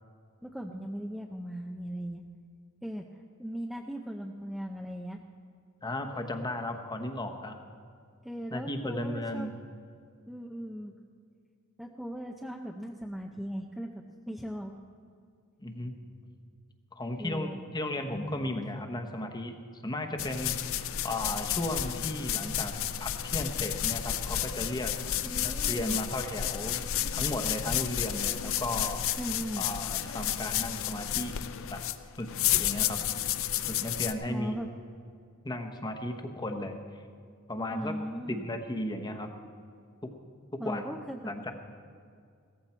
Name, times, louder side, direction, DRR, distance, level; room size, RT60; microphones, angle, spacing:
voice 1, 0.4-2.3 2.8-5.2 8.2-9.5 10.3-10.9 11.8-14.7 17.2-17.6 25.2-26.0 29.2-29.7 34.3-34.7 37.7-38.5 40.6-41.3, equal, ahead, 1 dB, 0.5 m, -38 dB
voice 2, 5.8-7.6 8.5-9.6 15.6-16.0 17.0-19.5 19.8-20.5 21.0-22.7 23.0-24.9 25.4-26.8 27.1-29.0 29.6-31.4 31.7-31.8 32.2-32.3 32.6-33.0 33.7-34.6 35.4-37.0 37.5-37.9 38.3-39.3 40.5-40.8 41.2-41.5, left 1 dB, 20° left, 5 dB, 1.0 m, -35 dB
sound 1, 20.2-34.1, left 11 dB, 65° left, 0.6 m, -31 dB
16.5 x 14.5 x 4.4 m, 2.3 s
head